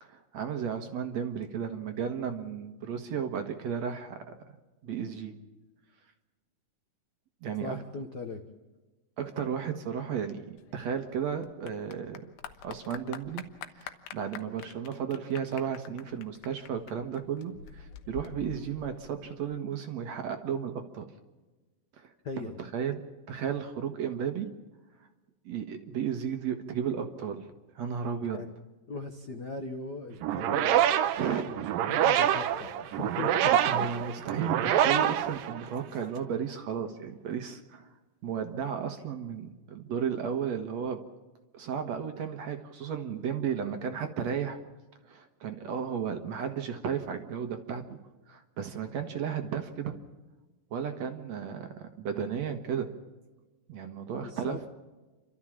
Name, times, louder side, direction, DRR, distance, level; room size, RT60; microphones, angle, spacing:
voice 1, 0.0-4.3 4.8-5.3 7.4-7.8 9.2-12.2 12.6-13.4 13.7-21.1 21.9-23.0 23.3-24.5 25.5-28.4 31.2-31.5 33.5-37.9 38.2-41.1 41.5-44.6 45.1-48.0 48.3-49.9 50.7-52.9 53.7-54.7, right 7 dB, 60° right, 6 dB, 2.3 m, -34 dB
voice 2, 7.6-8.4 22.2-22.6 28.2-28.5 28.9-30.8 31.5-33.9 54.2-54.6, left 4 dB, 75° left, 4 dB, 0.9 m, -39 dB
Clapping / Applause, 10.6-19.6, left 9 dB, 90° left, 2.8 m, -46 dB
sound 1, 30.2-36.0, right 10 dB, 80° right, 2.5 m, -26 dB
30.0 x 13.0 x 7.4 m, 1.2 s
omnidirectional pair, 4.0 m